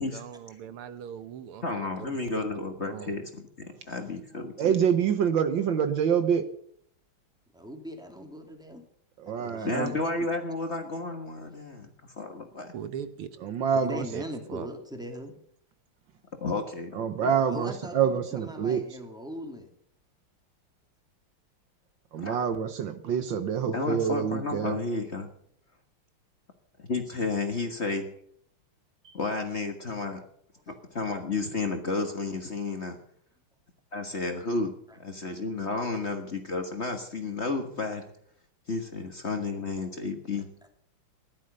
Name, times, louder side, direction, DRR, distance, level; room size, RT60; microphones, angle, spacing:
voice 1, 0.0-2.4 2.9-3.1 12.7-13.3 14.1-14.2 14.5-14.7, right 8 dB, 85° right, 11 dB, 2.0 m, -40 dB
voice 2, 1.6-4.7 9.6-12.7 16.4-17.3 22.2-22.4 23.7-25.3 26.8-28.1 29.1-30.2 30.7-33.0 33.9-38.0 38.7-40.5, left 3 dB, 35° left, 5 dB, 1.5 m, -32 dB
voice 3, 4.6-6.5 9.2-9.9 13.4-14.0 16.9-18.8 22.1-24.8, right 7 dB, 65° right, 10 dB, 1.6 m, -26 dB
voice 4, 7.5-8.9 9.2-10.0 13.8-15.3 17.5-19.7 34.9-35.0, left 1 dB, ahead, 3 dB, 2.4 m, -39 dB
15.5 x 12.0 x 6.7 m, 0.65 s
omnidirectional pair, 2.4 m